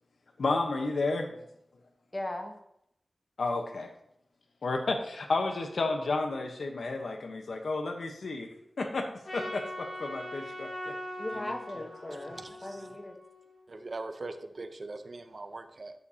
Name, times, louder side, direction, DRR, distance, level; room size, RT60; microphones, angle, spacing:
voice 1, 0.4-1.3 3.4-3.9 4.6-9.1 9.3-10.9 11.4-11.6, left 3 dB, 85° left, 4 dB, 1.0 m, -32 dB
voice 2, 2.1-2.6 11.2-13.2, left 1 dB, 25° left, 4 dB, 1.1 m, -38 dB
Trumpet, 9.2-13.6, left 1 dB, 50° left, 2.5 m, -41 dB
voice 3, 13.7-15.9, right 3 dB, 50° right, 8 dB, 0.6 m, -41 dB
11.5 x 6.6 x 2.8 m, 0.77 s
wide cardioid pair, 95°, 0 cm